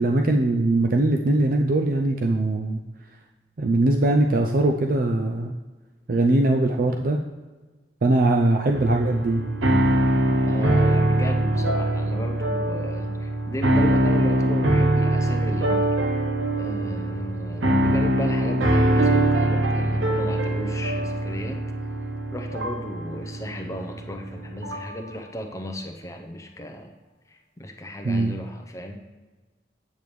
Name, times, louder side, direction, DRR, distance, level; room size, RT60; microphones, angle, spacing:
voice 1, 0.0-2.8 3.6-5.6 6.1-7.2 8.0-9.4 28.0-28.3, right 2 dB, 50° right, 3 dB, 0.4 m, -21 dB
sound 1, 8.7-25.0, right 1 dB, 90° right, 0.8 m, -23 dB
voice 2, 10.5-15.9 16.5-21.6 22.3-26.9 27.3-29.0, equal, 15° left, 4 dB, 0.6 m, -34 dB
8.6 x 6.8 x 3.1 m, 1.3 s
head